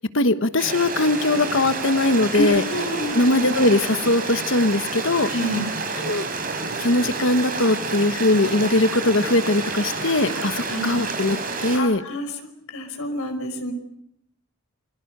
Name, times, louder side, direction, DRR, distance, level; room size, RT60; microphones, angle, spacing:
voice 1, 0.1-2.6 3.1-5.3 6.0-6.2 6.8-12.0, left 2 dB, 60° left, 11 dB, 1.2 m, -20 dB
Stream, 0.6-11.8, right 3 dB, 40° right, 5.9 m, -29 dB
voice 2, 2.3-3.1 5.3-5.7 10.3-10.8 11.7-12.3 12.7-13.7, equal, 80° left, 6 dB, 5.2 m, -28 dB
29.0 x 23.0 x 6.7 m, 0.73 s
head